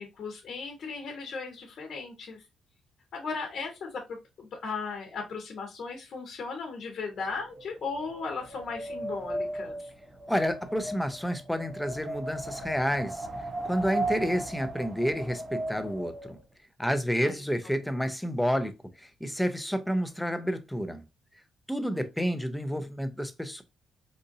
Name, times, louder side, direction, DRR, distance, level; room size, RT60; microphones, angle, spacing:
voice 1, 0.0-2.4 3.1-9.9 17.2-17.4 21.9-22.4, left 4 dB, 60° left, 1.0 m, -37 dB
Wind, 7.2-16.4, right 1 dB, 30° right, 0.8 m, -36 dB
voice 2, 10.3-13.3 13.6-16.4 16.8-18.7 19.0-21.0 21.7-23.6, equal, 5° left, 0.6 m, -29 dB
4.0 x 2.6 x 2.6 m
cardioid pair, 90°, 0 cm